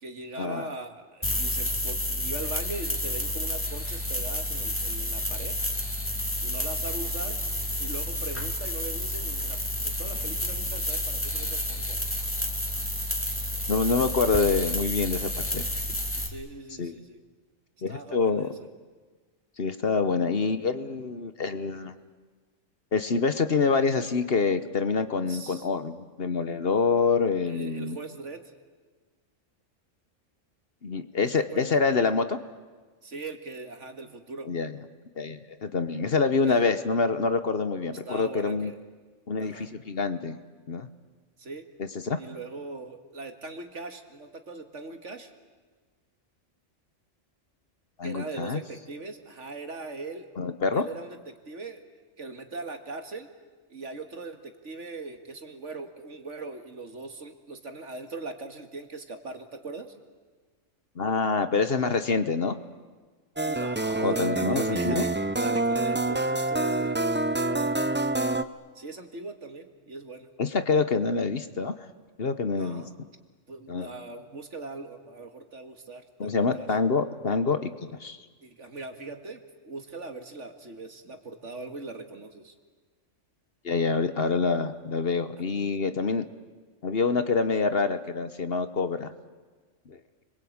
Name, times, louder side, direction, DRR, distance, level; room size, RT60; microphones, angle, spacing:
voice 1, 0.0-5.6 6.4-7.4 7.8-9.6 9.8-12.0 16.2-17.2 17.9-18.5 25.3-25.7 27.5-28.5 31.2-31.7 33.0-34.5 36.4-36.7 38.1-38.8 39.4-39.7 41.4-41.7 42.2-45.3 48.0-50.3 50.7-51.8 52.2-53.3 53.7-59.9 63.4-67.0 67.3-68.1 68.8-70.3 72.5-72.9 73.5-76.7 78.4-82.5, right 3 dB, 65° right, 6 dB, 2.3 m, -40 dB
sound 1, 1.2-16.3, left 1 dB, 10° left, 2.8 m, -30 dB
voice 2, 13.7-15.7 16.8-16.9 17.8-18.5 19.6-22.0 22.9-28.0 30.8-32.4 34.5-34.7 35.2-38.7 39.3-40.4 40.7-40.9 41.8-42.2 48.0-48.6 50.4-50.8 61.0-62.6 64.0-65.0 70.4-71.7 72.2-72.8 73.7-73.9 76.2-78.2 83.6-86.2 86.8-89.1 89.9-90.0, left 4 dB, 50° left, 11 dB, 1.3 m, -26 dB
sound 2, 63.4-68.4, right 2 dB, 15° right, 0.5 m, -27 dB
29.5 x 22.0 x 8.8 m, 1.4 s
omnidirectional pair, 1.3 m